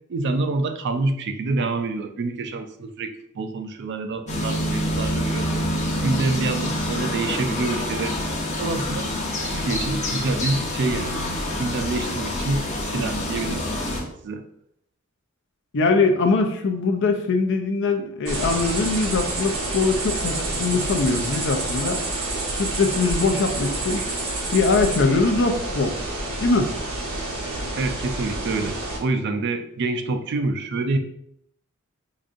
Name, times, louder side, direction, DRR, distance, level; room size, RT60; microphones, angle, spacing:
voice 1, 0.1-5.5 6.0-9.1 9.5-11.2 11.6-13.9 14.2-14.4 27.7-31.0, right 3 dB, 55° right, 8 dB, 0.4 m, -27 dB
sound 1, 4.3-14.0, left 1 dB, 35° left, 0.7 m, -27 dB
voice 2, 15.7-22.0 22.6-24.0 24.5-25.9 26.4-26.7, left 3 dB, 60° left, 5 dB, 0.5 m, -22 dB
sound 2, 18.3-29.0, right 2 dB, 85° right, 0.9 m, -28 dB
4.9 x 2.6 x 2.5 m, 0.72 s
head